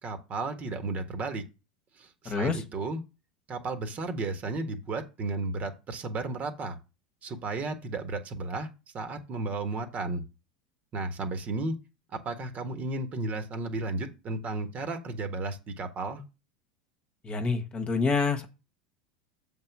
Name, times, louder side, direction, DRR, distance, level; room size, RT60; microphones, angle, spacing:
voice 1, 0.0-1.4 2.0-3.0 3.5-6.8 7.2-8.7 8.9-10.2 10.9-11.8 12.1-16.2, right 3 dB, 40° right, 7 dB, 1.5 m, -33 dB
voice 2, 2.2-2.6 17.2-18.5, left 4 dB, 30° left, 5 dB, 1.4 m, -27 dB
7.4 x 3.9 x 6.0 m, 0.29 s
hypercardioid pair, 85°, 4 cm